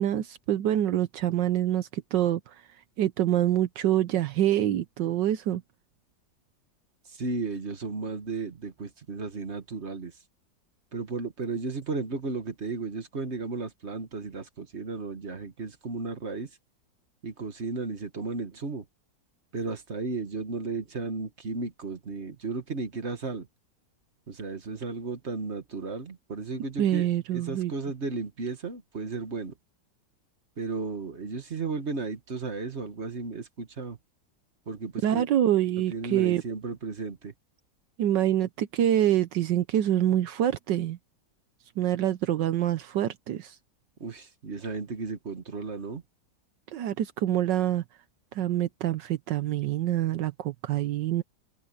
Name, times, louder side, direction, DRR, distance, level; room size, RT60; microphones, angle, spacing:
voice 1, 0.0-2.4 3.0-5.6 26.8-27.7 35.0-36.4 38.0-41.0 41.8-43.5 46.7-47.8 48.3-51.2, right 11 dB, 75° right, 1.4 m, -26 dB
voice 2, 7.1-10.1 10.9-16.5 17.2-18.8 19.5-23.5 24.3-29.5 30.6-34.0 34.7-35.2 35.8-37.3 44.0-46.0, right 4 dB, 40° right, 1.7 m, -34 dB
omnidirectional pair, 2.0 m